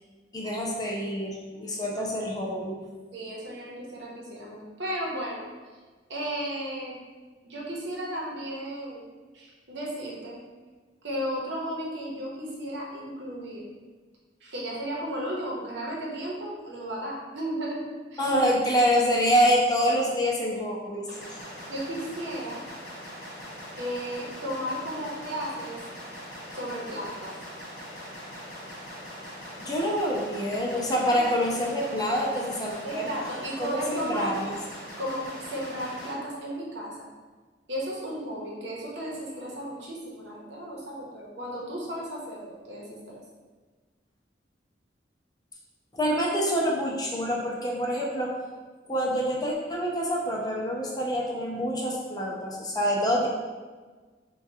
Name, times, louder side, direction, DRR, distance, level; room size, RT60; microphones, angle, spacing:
voice 1, 0.3-2.8 18.2-21.4 29.6-33.1 33.6-34.5 45.9-48.3 48.9-53.3, equal, 20° left, -2 dB, 0.6 m, -26 dB
voice 2, 3.1-5.5 6.1-7.0 7.4-10.4 11.0-13.6 14.4-17.9 18.1-18.3 21.6-22.6 23.8-25.8 26.5-27.4 31.1-31.2 32.8-34.4 35.0-37.1 37.7-43.2, equal, 80° right, -3 dB, 0.8 m, -34 dB
sound 1, 21.1-36.1, equal, 50° left, 0.9 m, -42 dB
4.5 x 2.3 x 2.7 m, 1.4 s
head